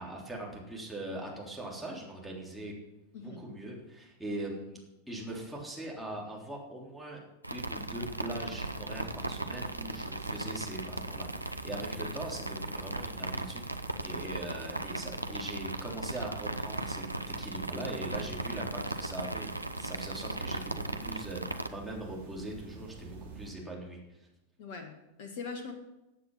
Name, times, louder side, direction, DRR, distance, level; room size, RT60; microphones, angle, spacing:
voice 1, 0.0-2.7 3.2-4.8 5.1-7.2 7.5-24.3, right 1 dB, 5° right, -3 dB, 3.5 m, -41 dB
sound 1, 7.4-21.7, right 1 dB, 85° right, 0.7 m, -37 dB
sound 2, 7.6-23.5, right 4 dB, 60° right, 2.5 m, -49 dB
voice 2, 24.6-25.7, left 4 dB, 50° left, 5 dB, 1.6 m, -42 dB
14.5 x 8.4 x 5.6 m, 0.97 s
figure-of-eight pair, 90°, 0 cm